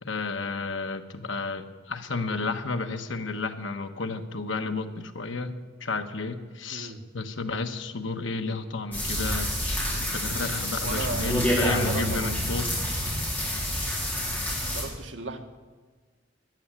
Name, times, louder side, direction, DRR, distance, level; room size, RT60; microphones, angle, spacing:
voice 1, 0.0-5.5 5.8-12.7, left 3 dB, 80° left, 7 dB, 1.2 m, -32 dB
voice 2, 6.7-7.1 10.5-12.4 14.6-15.4, right 3 dB, 75° right, 5 dB, 1.6 m, -37 dB
sound 1, 8.9-14.8, equal, 10° left, 4.3 m, -28 dB
14.0 x 10.0 x 9.9 m, 1.4 s
head